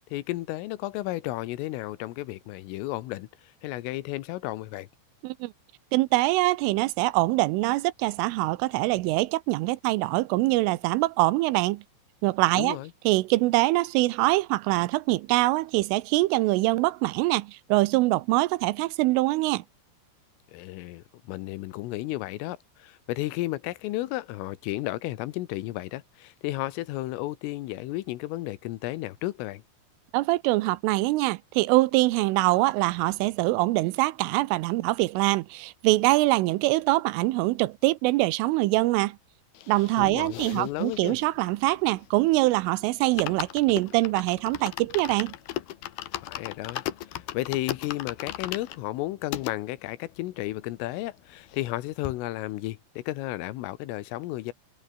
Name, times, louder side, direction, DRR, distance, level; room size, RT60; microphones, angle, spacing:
voice 1, 0.1-3.3 3.6-4.9 12.5-12.9 20.5-29.6 40.0-41.2 46.2-54.5, left 17 dB, 85° left, 3.7 m, -33 dB
voice 2, 5.9-11.8 12.2-12.8 13.1-19.6 30.1-39.2 39.7-45.3, right 20 dB, 85° right, 3.3 m, -24 dB
sound 1, 39.5-42.3 42.7-42.8 43.0-49.5 50.1-50.2 50.4-50.5 50.8-51.8 52.0-52.2, left 13 dB, 65° left, 2.7 m, -37 dB
omnidirectional pair, 5.8 m